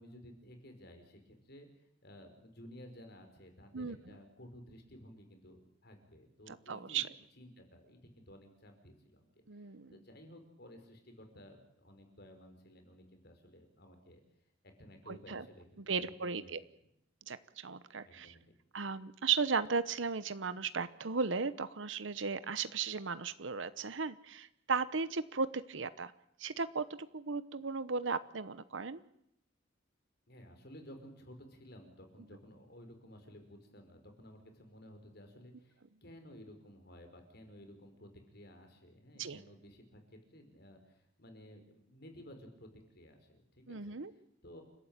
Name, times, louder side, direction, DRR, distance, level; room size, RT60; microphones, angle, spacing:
voice 1, 0.0-7.0 7.3-9.3 9.6-14.2 14.8-16.5 18.0-18.5 30.3-42.7 42.9-44.6, equal, 60° left, 6 dB, 5.4 m, -55 dB
voice 2, 6.5-7.1 9.5-9.9 15.1-15.4 15.9-16.6 17.3-18.3 18.7-26.1 26.4-29.0 39.2-39.4 43.7-44.1, right 5 dB, 80° right, 14 dB, 1.0 m, -36 dB
29.5 x 13.0 x 9.0 m, 0.78 s
head